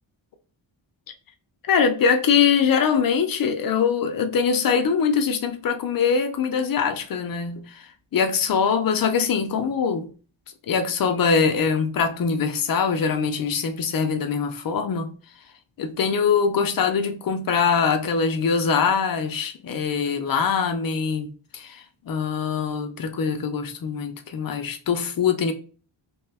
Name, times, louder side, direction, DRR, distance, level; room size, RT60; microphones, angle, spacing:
voice 1, 1.7-7.8 8.1-10.1 10.7-15.1 15.8-25.5, left 6 dB, 50° left, 0.5 m, -23 dB
3.0 x 2.2 x 3.3 m
wide cardioid pair, 175°, 48 cm